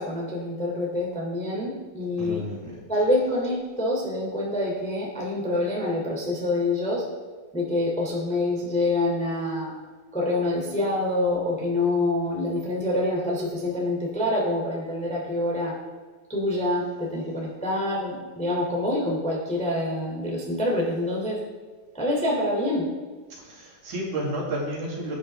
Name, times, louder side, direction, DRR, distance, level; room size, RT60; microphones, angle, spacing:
voice 1, 0.0-2.5 2.9-7.0 7.5-9.7 10.1-15.8 16.3-21.4 21.9-22.9, left 1 dB, ahead, -3 dB, 2.4 m, -26 dB
voice 2, 2.2-2.8 23.4-25.2, right 1 dB, 55° right, -3 dB, 3.6 m, -31 dB
18.5 x 10.5 x 3.7 m, 1.4 s
omnidirectional pair, 4.4 m